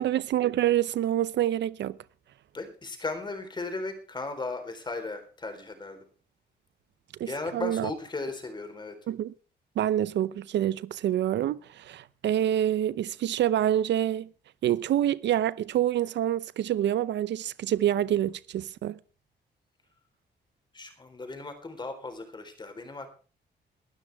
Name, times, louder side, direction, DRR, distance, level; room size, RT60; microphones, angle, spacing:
voice 1, 0.0-2.0 7.2-7.3 7.5-7.9 9.1-9.3 9.8-14.3 14.6-19.0, right 11 dB, 80° right, 0.6 m, -26 dB
voice 2, 2.5-6.0 7.3-9.0 20.7-23.1, left 3 dB, 25° left, 3.9 m, -36 dB
21.0 x 12.5 x 3.5 m
wide cardioid pair, 145°, 18 cm